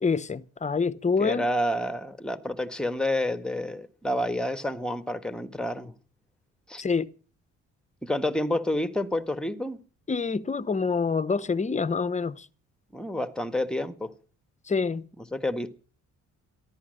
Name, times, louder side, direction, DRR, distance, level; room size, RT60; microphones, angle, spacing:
voice 1, 0.0-1.5 6.8-7.1 10.1-12.5 14.7-15.0, left 5 dB, 25° left, 0.9 m, -26 dB
voice 2, 1.2-5.9 6.7-6.8 8.0-9.8 12.9-14.1 15.2-15.7, left 1 dB, 5° left, 1.4 m, -29 dB
14.0 x 12.0 x 6.4 m
cardioid pair, 90°, 30 cm